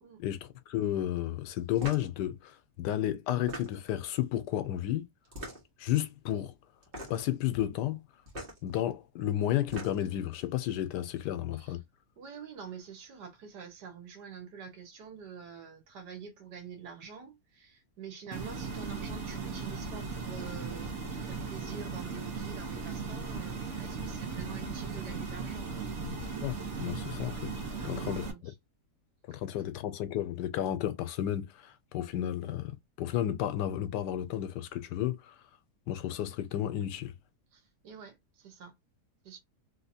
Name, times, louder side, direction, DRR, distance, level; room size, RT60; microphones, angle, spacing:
voice 1, 0.2-5.1 5.8-6.5 7.1-8.0 8.6-11.8 26.0-26.1 26.4-27.5 27.8-28.3 29.3-35.3 35.9-37.1, left 12 dB, 90° left, 1.2 m, -32 dB
sound 1, 1.8-2.1 3.3-4.0 5.2-5.8 6.8-7.3 8.3-8.6 9.5-10.2, equal, 35° right, 1.4 m, -42 dB
voice 2, 12.2-25.9 27.8-28.5 29.3-29.4 37.5-38.7 39.2-39.4, right 7 dB, 75° right, 1.6 m, -47 dB
sound 2, 18.3-28.3, right 4 dB, 50° right, 1.1 m, -37 dB
3.3 x 2.8 x 2.7 m
omnidirectional pair, 1.8 m